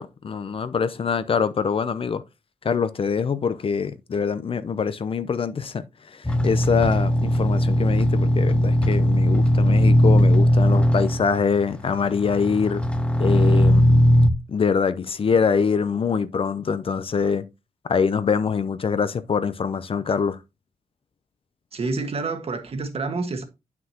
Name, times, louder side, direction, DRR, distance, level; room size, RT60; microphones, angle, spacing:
voice 1, 0.0-2.2 2.6-5.8 6.1-12.8 13.2-14.0 14.5-17.4 17.9-20.4, left 6 dB, 45° left, 0.5 m, -24 dB
sound 1, 6.2-14.3, equal, 10° left, 0.9 m, -18 dB
voice 2, 21.7-23.4, right 3 dB, 50° right, 1.5 m, -28 dB
9.4 x 5.9 x 2.9 m
wide cardioid pair, 125°, 13 cm